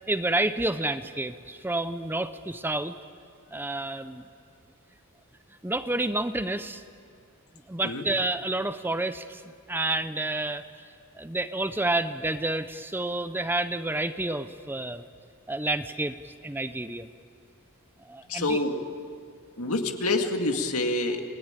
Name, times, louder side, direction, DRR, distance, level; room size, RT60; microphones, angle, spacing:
voice 1, 0.1-2.9 3.5-4.2 5.6-6.8 7.7-9.4 9.7-10.6 11.2-15.0 15.5-17.1 18.0-18.6, right 2 dB, 10° right, 11 dB, 0.7 m, -29 dB
voice 2, 18.3-18.8 19.6-21.2, left 2 dB, 75° left, 4 dB, 2.1 m, -27 dB
29.0 x 19.0 x 9.0 m, 2.2 s
head